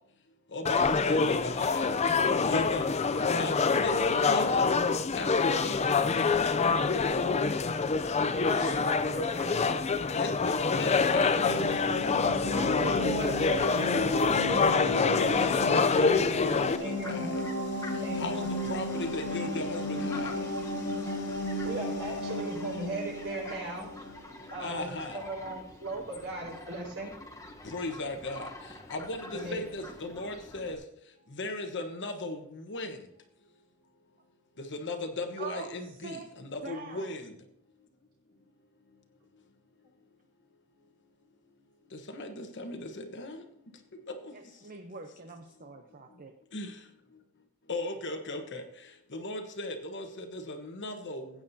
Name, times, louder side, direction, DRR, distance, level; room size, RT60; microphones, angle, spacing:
voice 1, 0.5-1.9 2.5-2.9 3.4-4.7 5.1-6.0 10.2-11.8 14.6-17.4 18.2-20.4 24.6-25.2 27.6-28.5 28.9-30.8 31.3-33.0 34.6-37.3 42.1-43.4 44.1-44.3 46.5-46.7 47.7-48.6 49.1-51.3, left 2 dB, 55° left, 6 dB, 1.2 m, -37 dB
sound 1, 0.7-16.8, left 4 dB, 30° left, 0.5 m, -26 dB
voice 2, 8.4-9.8 12.5-14.2 16.8-17.3 18.0-18.5 21.4-23.9 24.5-24.9 25.1-27.1 29.3-29.6, right 1 dB, 60° right, -2 dB, 4.7 m, -37 dB
sound 2, 10.7-24.3, left 1 dB, 75° left, 1.7 m, -35 dB
Fowl, 15.2-30.7, left 2 dB, 15° left, 1.1 m, -47 dB
voice 3, 35.4-35.8 36.0-36.3 36.6-37.1 44.3-46.3, right 4 dB, 40° right, 5 dB, 0.8 m, -43 dB
16.5 x 8.7 x 2.8 m, 0.74 s
head